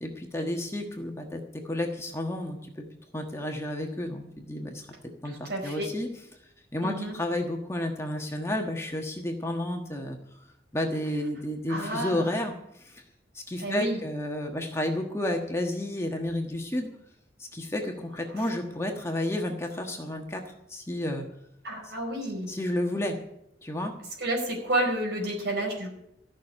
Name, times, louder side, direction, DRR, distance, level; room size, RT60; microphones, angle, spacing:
voice 1, 0.0-2.8 3.1-4.9 5.2-6.1 6.7-10.2 10.7-13.0 13.3-16.9 17.4-21.3 21.8-21.9 22.5-23.2 23.6-23.9, left 1 dB, 15° left, 2 dB, 1.4 m, -31 dB
voice 2, 5.2-5.9 6.8-7.1 11.7-12.3 13.6-14.0 18.3-18.5 21.6-22.6 24.2-25.9, right 1 dB, 65° right, 1 dB, 5.0 m, -30 dB
14.5 x 6.3 x 9.9 m, 0.78 s
head